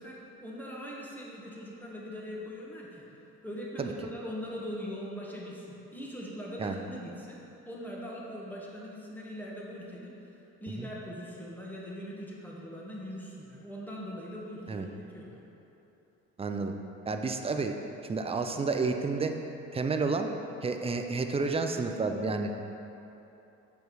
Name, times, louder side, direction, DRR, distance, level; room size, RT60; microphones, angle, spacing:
voice 1, 0.0-3.1 3.4-10.1 10.6-15.4, equal, 5° left, -4 dB, 1.4 m, -41 dB
voice 2, 16.4-16.7 17.1-17.8 18.1-19.4 19.7-20.3 20.6-22.5, right 4 dB, 20° right, 5 dB, 0.5 m, -30 dB
5.9 x 5.2 x 4.7 m, 3.0 s
cardioid pair, 90°, 30 cm